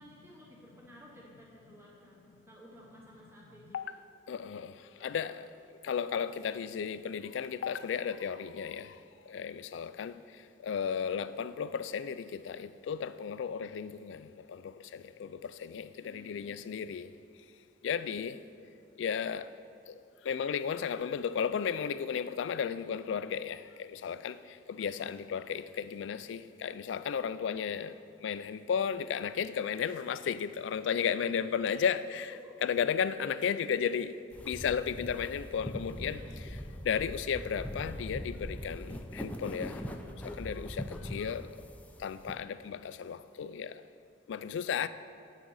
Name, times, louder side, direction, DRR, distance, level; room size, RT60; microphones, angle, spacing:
voice 1, 0.0-2.2 2.4-4.0 4.7-5.4 16.0-16.7 30.9-31.8 32.3-32.6 36.0-36.7, equal, 15° right, 0.9 m, -55 dB
voice 2, 4.3-4.7 5.0-5.5 5.8-8.9 9.3-10.1 10.6-17.1 17.8-18.4 19.0-19.5 19.9-20.0 20.3-24.4 24.7-27.9 28.2-32.3 32.6-34.1 34.4-36.2 36.8-39.8 40.2-41.5 42.0-43.7 44.3-44.9, left 7 dB, 75° left, 0.3 m, -34 dB
sound 1, 34.3-42.3, equal, 10° left, 0.5 m, -41 dB
8.9 x 6.1 x 5.5 m
head